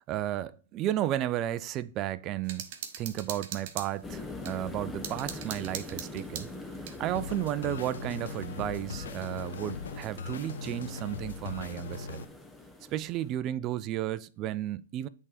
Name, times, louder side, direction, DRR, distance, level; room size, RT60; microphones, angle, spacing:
voice 1, 0.0-2.7 3.0-6.5 7.0-12.3 12.9-15.1, right 12 dB, 30° right, 0.4 m, -33 dB
sound 1, 2.5-4.6 5.0-7.0, right 8 dB, 45° right, 1.2 m, -40 dB
sound 2, 4.0-13.4, left 2 dB, 10° left, 0.8 m, -43 dB
sound 3, 7.1-12.2, left 5 dB, 75° left, 0.6 m, -40 dB
8.3 x 3.6 x 4.9 m
hypercardioid pair, 135°, 0 cm